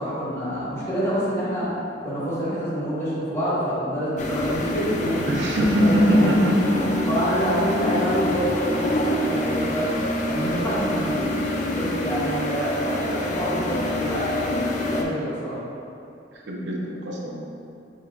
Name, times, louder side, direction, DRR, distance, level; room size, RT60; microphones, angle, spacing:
voice 1, 0.0-1.7 2.0-5.2 5.5-6.5 7.0-9.9 10.2-11.2 11.7-14.6 14.9-15.6, equal, 15° left, -10 dB, 1.4 m, -27 dB
sound 1, 4.2-15.0, left 1 dB, 45° left, 0.4 m, -26 dB
voice 2, 5.3-7.0 16.3-17.5, equal, 85° right, -2 dB, 0.6 m, -22 dB
6.6 x 2.8 x 2.4 m, 2.6 s
head